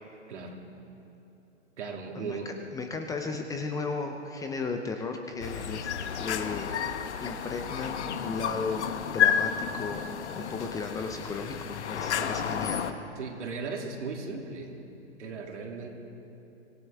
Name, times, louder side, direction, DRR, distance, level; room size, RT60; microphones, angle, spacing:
voice 1, 0.3-0.6 1.8-2.6 12.2-12.4 13.1-14.7 15.2-15.9, right 4 dB, 75° right, 1 dB, 2.7 m, -37 dB
voice 2, 2.1-6.9 7.2-8.9 9.1-12.9, left 4 dB, 10° left, 4 dB, 0.5 m, -35 dB
sound 1, 5.4-12.9, left 8 dB, 65° left, 1.1 m, -31 dB
25.0 x 16.0 x 3.5 m, 2.9 s
hypercardioid pair, 130°, 36 cm